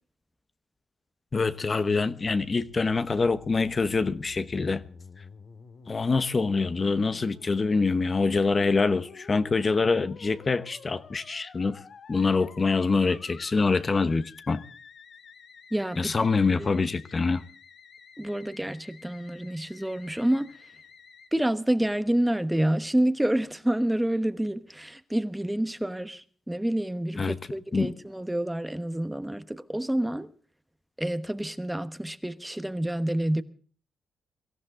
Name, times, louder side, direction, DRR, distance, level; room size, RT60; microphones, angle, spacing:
voice 1, 1.3-4.8 5.9-11.8 12.1-14.6 16.0-17.4 27.2-27.4 27.7-27.9, left 4 dB, 30° left, 1.0 m, -25 dB
Musical instrument, 2.2-21.3, left 6 dB, 60° left, 2.0 m, -50 dB
voice 2, 15.7-16.3 16.6-16.7 18.2-20.6 21.3-30.3 31.0-33.4, right 1 dB, 5° right, 1.1 m, -28 dB
23.5 x 14.5 x 3.7 m
cardioid pair, 105°, 0 cm